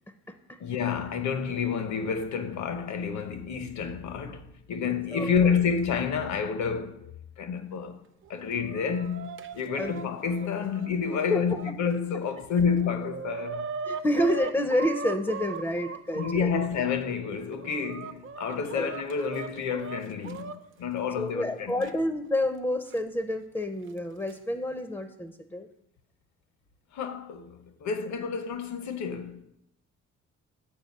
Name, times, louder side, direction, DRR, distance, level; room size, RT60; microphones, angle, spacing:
voice 1, 0.6-8.0 8.3-13.7 16.1-21.8 26.9-29.4, left 6 dB, 65° left, 0.9 m, -29 dB
voice 2, 5.1-5.5 9.8-9.9 11.3-11.6 13.8-16.6 18.8-18.9 21.2-25.7, left 1 dB, 10° left, 0.4 m, -29 dB
Chicken rooster, 8.2-11.7 12.3-12.4 12.6-16.7 17.3-20.6 21.8-21.9 22.9-23.0 24.0-24.3, right 4 dB, 40° right, 0.5 m, -38 dB
7.6 x 4.5 x 5.3 m
cardioid pair, 90°, 30 cm